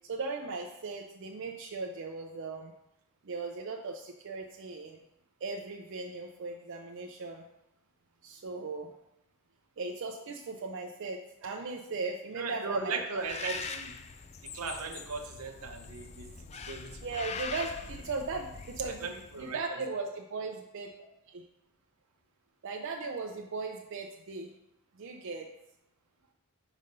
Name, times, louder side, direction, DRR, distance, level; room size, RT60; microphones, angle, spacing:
voice 1, 0.1-2.7 3.2-5.0 5.4-7.4 8.2-8.9 9.8-13.2 17.0-19.1 19.4-20.9 21.3-21.4 22.6-24.5 25.0-25.5, right 3 dB, 60° right, 1 dB, 0.5 m, -38 dB
voice 2, 12.4-13.9 14.5-16.3 16.7-17.1 18.9-19.8, right 4 dB, 80° right, 4 dB, 0.8 m, -37 dB
Bird, 13.2-19.6, left 5 dB, 30° left, 0.3 m, -43 dB
5.2 x 4.0 x 5.3 m, 0.87 s
head